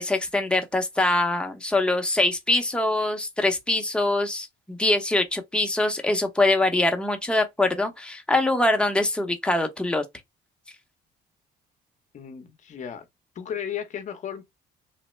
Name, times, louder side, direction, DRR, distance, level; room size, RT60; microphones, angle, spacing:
voice 1, 0.0-10.0, left 2 dB, 5° left, 0.7 m, -23 dB
voice 2, 12.1-13.1 13.3-14.4, left 8 dB, 45° left, 0.7 m, -34 dB
3.1 x 2.1 x 3.1 m
cardioid pair, 110°, 17 cm